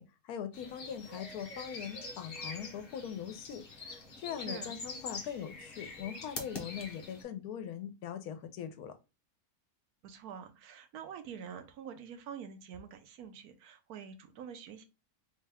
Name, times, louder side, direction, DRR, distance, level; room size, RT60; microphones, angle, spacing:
voice 1, 0.0-9.0, left 8 dB, 85° left, 1.1 m, -41 dB
sound 1, 0.5-7.2, left 3 dB, 45° left, 0.9 m, -45 dB
voice 2, 4.4-4.8 10.0-14.9, right 7 dB, 90° right, 1.1 m, -46 dB
3.5 x 2.2 x 3.3 m
omnidirectional pair, 1.5 m